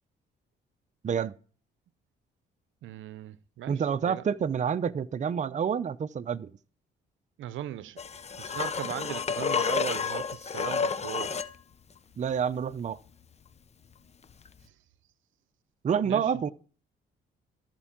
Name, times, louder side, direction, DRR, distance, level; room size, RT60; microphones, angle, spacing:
voice 1, 2.8-4.2 7.4-8.0 8.4-11.4 16.0-16.3, right 12 dB, 80° right, 0.7 m, -38 dB
voice 2, 3.7-6.5 12.2-13.0 15.8-16.5, right 7 dB, 35° right, 0.6 m, -28 dB
sound 1, 8.0-11.6 14.5-14.6, left 6 dB, 35° left, 0.7 m, -30 dB
14.0 x 4.6 x 7.3 m
cardioid pair, 90°, 20 cm